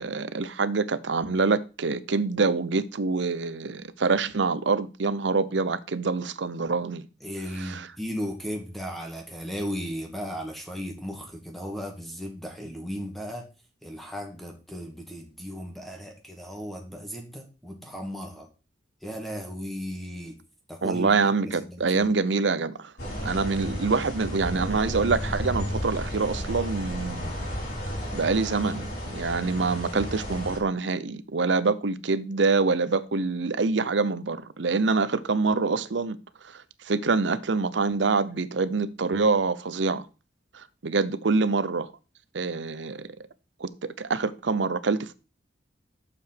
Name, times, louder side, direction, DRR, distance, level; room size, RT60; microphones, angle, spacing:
voice 1, 0.0-7.1 7.6-7.9 20.8-22.9 23.2-27.5 28.1-36.2 36.4-40.1 40.5-41.9 42.3-43.1 43.6-45.1, right 4 dB, 75° right, 0.7 m, -26 dB
voice 2, 7.2-13.5 13.8-18.5 19.0-20.4 20.7-22.0, equal, ahead, 1.9 m, -36 dB
sound 1, 23.0-30.6, equal, 60° left, 4.6 m, -33 dB
7.1 x 5.8 x 5.8 m
head